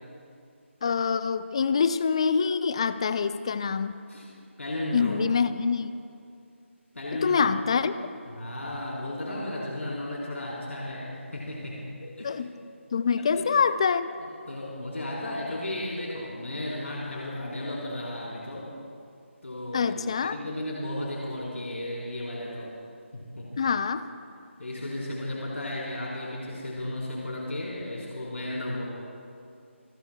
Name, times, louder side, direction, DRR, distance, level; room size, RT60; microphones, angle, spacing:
voice 1, 0.8-3.9 4.9-6.0 7.2-8.1 12.2-12.5 12.9-14.1 19.7-20.4 23.6-24.1, left 6 dB, 25° left, 13 dB, 0.4 m, -25 dB
voice 2, 4.6-5.1 6.9-7.4 8.3-12.3 13.2-13.5 14.5-18.7 19.4-19.9 20.2-22.7 23.1-23.5 24.6-28.9, left 1 dB, 85° left, -5 dB, 3.9 m, -34 dB
28.5 x 16.0 x 2.3 m, 2.4 s
figure-of-eight pair, 165°, 7 cm